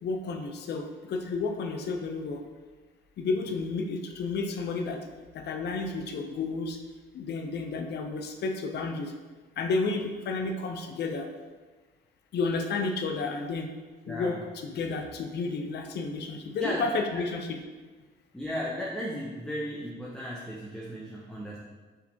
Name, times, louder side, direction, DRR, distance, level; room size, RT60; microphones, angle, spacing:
voice 1, 0.0-2.4 3.2-5.0 5.3-6.8 7.1-9.1 9.6-11.3 12.3-13.7 14.1-17.6, left 3 dB, 60° left, 5 dB, 0.5 m, -31 dB
voice 2, 14.1-14.4 16.6-16.8 17.1-17.2 18.3-21.6, equal, 5° left, -5 dB, 0.7 m, -35 dB
5.5 x 3.3 x 2.7 m, 1.3 s
cardioid pair, 90°, 20 cm